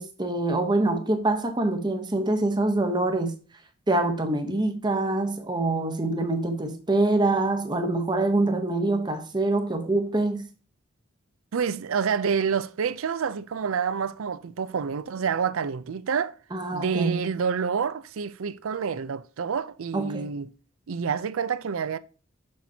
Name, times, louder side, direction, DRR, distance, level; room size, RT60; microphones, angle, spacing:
voice 1, 0.0-3.3 3.9-10.5 16.5-17.2 19.9-20.2, right 2 dB, 20° right, 0.9 m, -25 dB
voice 2, 11.5-16.4 16.7-20.5 20.9-22.0, right 6 dB, 75° right, 0.4 m, -28 dB
6.4 x 5.9 x 2.7 m
head